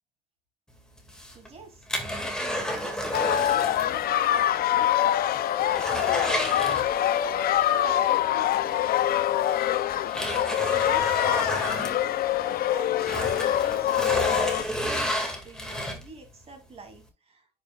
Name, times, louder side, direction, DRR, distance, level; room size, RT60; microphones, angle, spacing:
sound 1, 1.0-4.0 4.2-4.3 4.8-4.9 5.3-7.3 8.7-8.8 9.5-12.6 12.9-16.3 16.8-16.9, equal, 5° left, 2.2 m, -31 dB
voice 1, 1.3-1.9 2.2-4.0 4.3-6.2 6.5-7.5 7.8-9.1 10.6-12.1 12.4-17.5, right 3 dB, 35° right, 4 dB, 3.1 m, -45 dB
sound 2, 3.1-14.6, left 12 dB, 65° left, 0.7 m, -24 dB
10.0 x 5.6 x 2.4 m, 0.27 s
cardioid pair, 110°, 17 cm